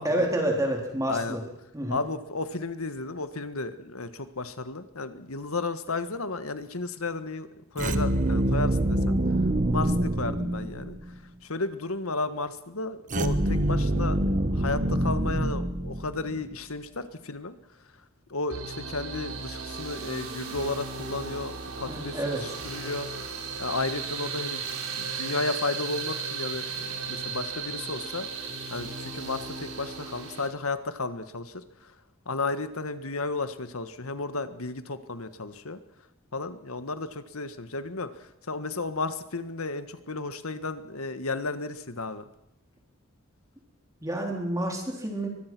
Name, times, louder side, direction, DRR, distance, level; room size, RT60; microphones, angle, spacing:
voice 1, 0.0-1.4 1.7-2.0 21.9-22.6 44.0-45.3, right 1 dB, 15° right, 1 dB, 3.7 m, -29 dB
voice 2, 1.9-7.5 7.7-9.2 9.7-11.0 11.4-14.2 14.5-17.6 18.3-24.6 24.9-31.9 32.2-35.8 36.3-42.2, left 3 dB, 80° left, 11 dB, 1.6 m, -33 dB
sound 1, 7.8-11.1 13.1-16.4, right 1 dB, 35° right, 1.2 m, -26 dB
sound 2, 18.5-30.5, right 5 dB, 75° right, 3.9 m, -36 dB
23.5 x 21.5 x 6.2 m, 0.85 s
head